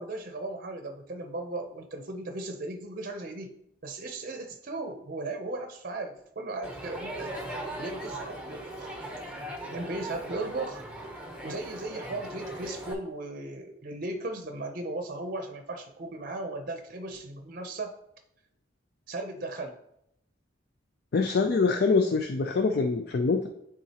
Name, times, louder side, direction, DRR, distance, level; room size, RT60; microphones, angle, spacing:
voice 1, 0.0-3.6 3.8-7.4 7.8-9.1 9.7-10.8 11.4-17.9 19.1-19.8, right 2 dB, 50° right, 5 dB, 0.6 m, -37 dB
Crowd, 6.6-12.9, right 1 dB, 5° right, 0.9 m, -39 dB
voice 2, 21.1-23.5, left 4 dB, 55° left, 5 dB, 0.4 m, -24 dB
10.0 x 3.7 x 2.9 m, 0.77 s
head